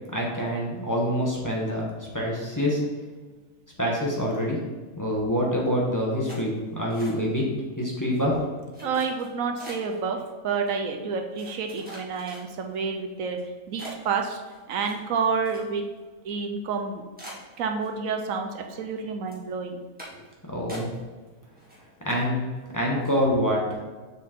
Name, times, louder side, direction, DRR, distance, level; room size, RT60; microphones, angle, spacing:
voice 1, 0.1-2.8 3.8-4.6 5.0-7.5 7.8-8.4 20.5-20.9 22.0-22.4 22.7-23.6, equal, 15° left, -3 dB, 1.2 m, -26 dB
sound 1, 6.3-7.5 7.8-8.2 8.7-10.0 10.7-10.8 11.4-12.8 13.3-13.4 13.8-16.0 16.3-16.4 16.7-16.8 17.2-18.2 18.6-19.0 19.3-19.5 20.0-20.3 20.7-21.3 21.6-22.2 22.6-22.7 23.0-23.3, right 1 dB, 5° right, 2.0 m, -44 dB
voice 2, 8.8-13.4 13.7-14.4 14.7-15.8 16.2-17.0 17.6-19.8, right 5 dB, 75° right, 4 dB, 1.1 m, -29 dB
7.0 x 4.7 x 4.5 m, 1.3 s
omnidirectional pair, 1.5 m